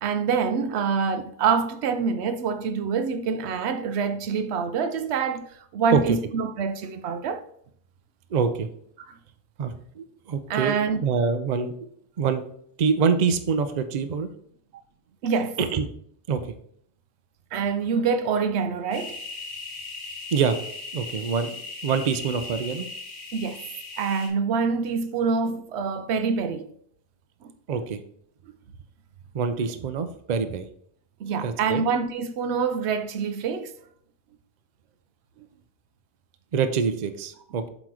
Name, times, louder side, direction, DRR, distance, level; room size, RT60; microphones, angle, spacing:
voice 1, 0.0-5.5 5.7-7.4 9.1-9.2 10.5-11.0 15.2-15.6 17.5-19.2 23.3-23.6 24.0-26.7 31.2-33.7, right 5 dB, 90° right, 0.9 m, -26 dB
voice 2, 8.3-8.7 9.6-11.9 12.2-12.4 12.8-14.3 15.6-15.8 16.3-16.4 20.3-20.6 20.9-22.9 27.7-28.0 29.3-30.7 31.4-31.8 36.5-37.7, right 6 dB, 50° right, 0.6 m, -25 dB
sound 1, 18.9-24.3, left 3 dB, 50° left, 1.9 m, -38 dB
7.7 x 3.1 x 4.8 m
omnidirectional pair, 1.1 m